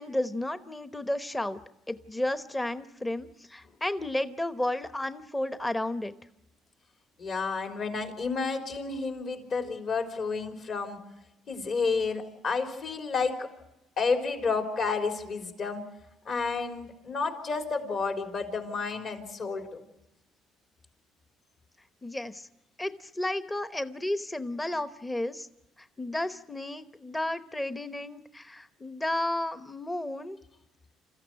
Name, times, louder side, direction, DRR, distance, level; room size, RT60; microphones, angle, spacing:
voice 1, 0.0-1.6 1.9-6.1 22.0-22.5 22.8-25.5 25.8-30.4, left 1 dB, 15° left, 11 dB, 1.0 m, -32 dB
voice 2, 7.2-11.0 11.5-13.5 14.0-15.9 16.3-19.8, left 4 dB, 50° left, 4 dB, 3.7 m, -31 dB
27.5 x 14.5 x 9.1 m, 0.92 s
supercardioid pair, 85°, 0 cm